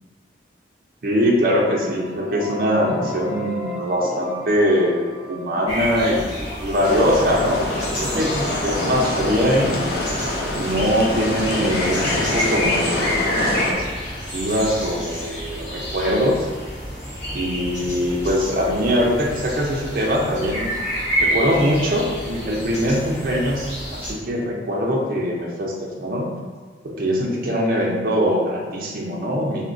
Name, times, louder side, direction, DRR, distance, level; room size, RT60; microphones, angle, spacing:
voice 1, 1.0-6.3 6.6-9.9 10.5-13.9 14.3-16.5 17.3-20.7 21.2-26.3 26.8-29.6, equal, 50° right, -2 dB, 0.4 m, -22 dB
sound 1, 1.5-13.2, equal, 30° left, 1.1 m, -36 dB
sound 2, 5.7-24.1, equal, 85° left, 1.3 m, -29 dB
sound 3, 6.8-13.7, left 1 dB, 55° left, 0.4 m, -25 dB
3.6 x 2.1 x 2.5 m, 1.4 s
head